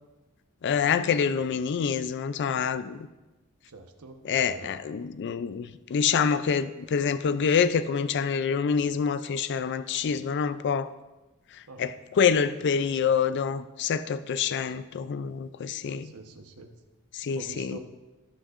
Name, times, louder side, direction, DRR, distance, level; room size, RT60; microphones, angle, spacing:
voice 1, 0.6-3.1 4.2-10.9 11.8-16.1 17.1-17.8, left 6 dB, 50° left, 13 dB, 0.4 m, -26 dB
voice 2, 3.7-4.7 11.7-11.8 15.9-16.7 17.4-17.8, right 3 dB, 75° right, 5 dB, 1.0 m, -45 dB
18.0 x 6.3 x 2.5 m, 1.1 s
head